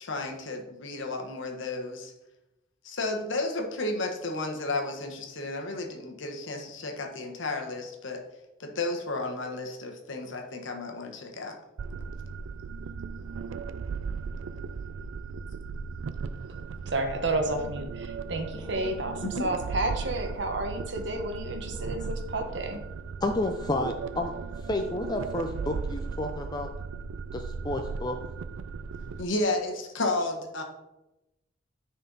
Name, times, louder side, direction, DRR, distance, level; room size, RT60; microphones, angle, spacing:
voice 1, 0.0-2.1 2.8-8.2 8.6-11.6 19.2-19.5 29.2-30.6, left 2 dB, 75° left, 3 dB, 1.3 m, -32 dB
sound 1, 11.8-29.2, right 5 dB, 85° right, 0.4 m, -37 dB
voice 2, 16.9-22.8, right 2 dB, 65° right, 5 dB, 1.1 m, -31 dB
voice 3, 19.4-20.4 21.7-22.1 22.4-22.6 23.2-26.7 27.3-28.2, left 2 dB, 20° left, 5 dB, 0.4 m, -32 dB
10.0 x 4.4 x 4.0 m, 0.96 s
head